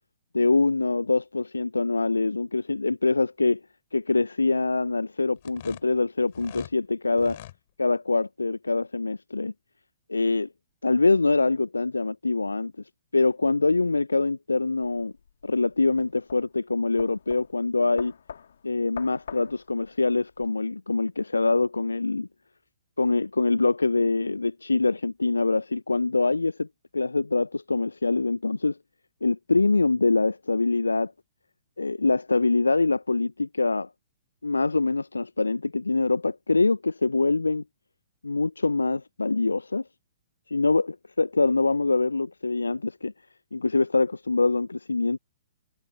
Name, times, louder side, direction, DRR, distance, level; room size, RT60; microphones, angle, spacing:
voice 1, 0.3-3.6 3.9-7.4 7.8-9.5 10.1-10.5 10.8-12.7 13.1-15.1 15.4-18.1 18.6-22.3 23.0-26.7 26.9-28.8 29.2-31.1 31.8-33.9 34.4-37.6 38.2-39.8 40.5-43.1 43.5-45.2, left 3 dB, 75° left, 0.5 m, -24 dB
sound 1, 5.4-6.7 7.1-7.6, left 15 dB, 45° left, 7.6 m, -44 dB
sound 2, 14.8-20.5, left 7 dB, 60° left, 3.4 m, -45 dB
figure-of-eight pair, 120°, 0 cm